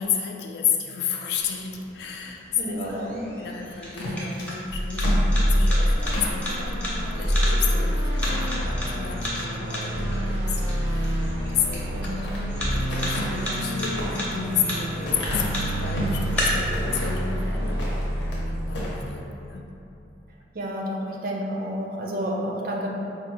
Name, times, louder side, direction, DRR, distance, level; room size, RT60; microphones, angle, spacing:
voice 1, 0.0-2.7 3.4-5.1 5.4-12.4 12.7-19.6, left 7 dB, 60° left, 1 dB, 0.3 m, -31 dB
sound 1, 1.4-16.4, equal, 5° left, 0.6 m, -36 dB
voice 2, 2.5-3.2 11.9-12.5 20.5-22.9, equal, 50° right, -1 dB, 0.4 m, -30 dB
sound 2, 3.9-6.4 6.9-7.1 7.5-7.6 8.0-9.0 9.5-9.9 11.7-12.5 12.9-16.2 16.7-17.3 17.7-18.4 18.7-19.0, left 1 dB, 80° left, 0.8 m, -33 dB
sound 3, 4.7-19.2, equal, 90° right, 0.7 m, -26 dB
4.6 x 2.3 x 2.9 m, 2.8 s
head